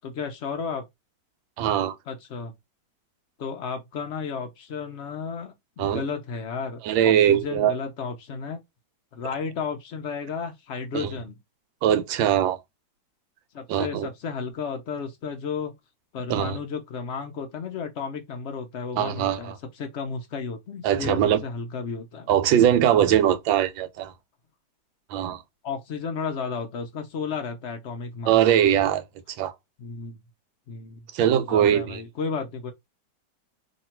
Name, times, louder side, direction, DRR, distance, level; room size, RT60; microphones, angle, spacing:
voice 1, 0.0-0.8 2.1-2.5 3.4-8.6 9.1-11.4 13.5-15.7 16.1-22.3 25.6-28.4 29.8-30.2 30.7-31.1 31.4-32.7, left 5 dB, 85° left, 0.6 m, -33 dB
voice 2, 1.6-2.0 5.8-6.0 6.8-7.7 10.9-11.1 11.8-12.6 13.7-14.1 16.3-16.6 18.9-19.5 20.8-21.4 22.3-24.1 25.1-25.4 28.3-29.0 29.4-29.5 31.1-32.0, right 10 dB, 90° right, 1.4 m, -21 dB
3.1 x 2.7 x 4.4 m
omnidirectional pair, 2.1 m